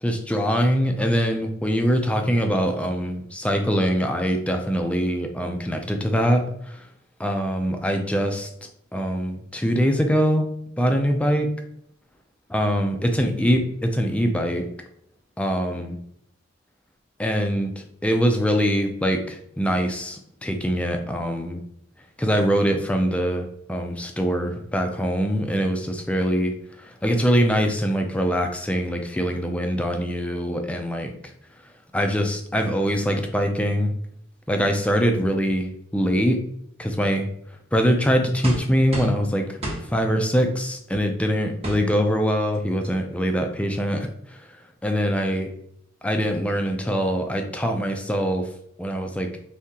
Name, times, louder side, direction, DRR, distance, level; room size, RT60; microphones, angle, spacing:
voice 1, 0.0-6.8 7.2-8.5 8.9-10.5 10.8-11.5 12.5-14.6 15.4-16.0 17.2-21.6 22.2-31.1 31.9-33.9 34.5-36.4 36.8-37.3 37.7-39.5 39.9-44.1 44.8-45.5 46.0-48.5 48.8-49.3, equal, 5° left, 4 dB, 0.4 m, -23 dB
sound 1, 38.4-39.2 39.6-39.8 40.9-41.0 41.6-41.8 42.5-42.6 42.8-43.1, right 1 dB, 30° right, 0.8 m, -30 dB
3.6 x 2.8 x 2.8 m, 0.69 s
head